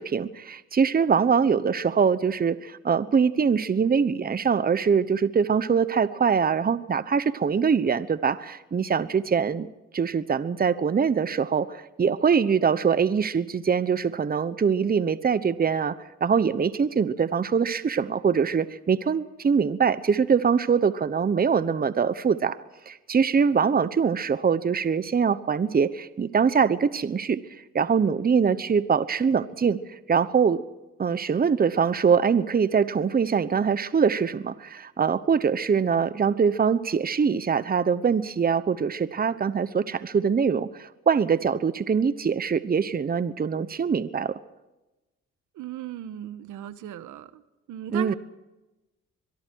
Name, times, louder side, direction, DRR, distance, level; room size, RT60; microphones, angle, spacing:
voice 1, 0.0-9.7 9.9-16.0 16.2-22.6 22.9-27.4 27.7-30.6 31.0-44.4 47.9-48.1, right 6 dB, 30° right, 15 dB, 1.0 m, -23 dB
voice 2, 45.5-47.4 47.7-48.1, right 11 dB, 80° right, 12 dB, 1.3 m, -36 dB
24.5 x 22.5 x 4.7 m, 1.0 s
cardioid pair, 90°, 30 cm